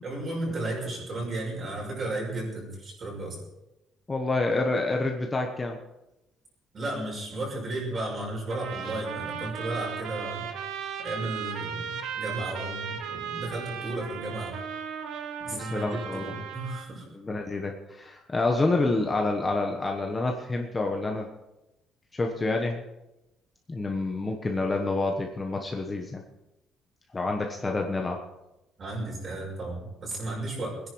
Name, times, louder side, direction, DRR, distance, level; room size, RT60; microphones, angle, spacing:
voice 1, 0.0-3.4 6.7-10.4 11.0-14.5 15.4-17.0 28.8-30.8, right 2 dB, 35° right, -3 dB, 6.3 m, -34 dB
voice 2, 4.1-5.8 15.5-16.3 17.1-21.3 22.1-22.8 23.7-26.2 27.1-28.2, left 2 dB, 15° left, 2 dB, 1.2 m, -28 dB
sound 1, 8.5-16.9, right 7 dB, 75° right, 1.6 m, -36 dB
22.0 x 10.5 x 4.7 m, 0.94 s
cardioid pair, 165°, 0 cm